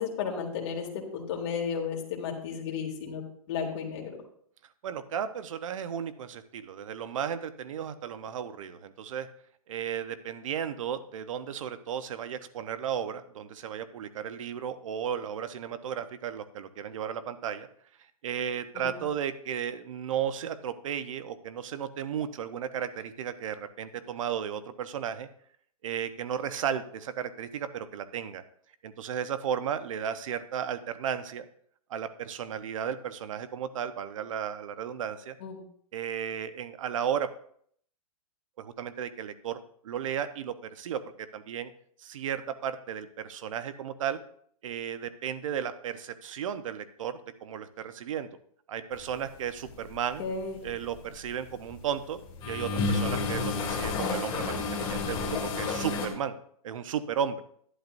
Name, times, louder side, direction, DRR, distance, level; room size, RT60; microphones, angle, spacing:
voice 1, 0.0-3.2 3.5-4.1 18.7-19.0 35.4-35.6 50.2-50.6, left 6 dB, 45° left, 0 dB, 2.7 m, -33 dB
voice 2, 4.8-9.3 9.7-17.7 18.2-25.3 25.8-28.4 28.8-31.5 31.9-35.4 35.9-37.3 38.6-39.6 39.8-41.7 42.0-44.2 44.6-48.3 48.7-50.2 50.6-52.2 52.4-56.4 56.6-57.4, right 8 dB, 60° right, 11 dB, 1.0 m, -34 dB
sound 1, 49.7-50.0 50.4-51.8 52.1-56.1, left 4 dB, 25° left, 1.9 m, -30 dB
12.0 x 11.5 x 2.6 m, 0.63 s
hypercardioid pair, 155°, 19 cm